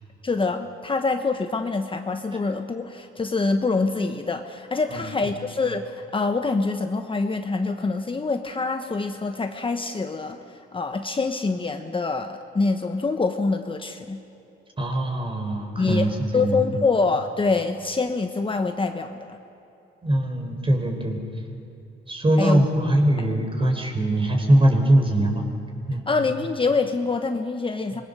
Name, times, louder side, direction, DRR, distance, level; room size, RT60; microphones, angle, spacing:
voice 1, 0.2-14.2 15.8-16.1 16.3-19.4 22.4-22.7 26.1-28.0, left 3 dB, 25° left, 6 dB, 1.2 m, -25 dB
voice 2, 4.9-5.3 14.8-16.8 20.0-21.2 22.1-25.5 25.9-26.0, right 1 dB, 25° right, 3 dB, 4.3 m, -22 dB
25.5 x 21.0 x 6.9 m, 3.0 s
cardioid pair, 90°, 20 cm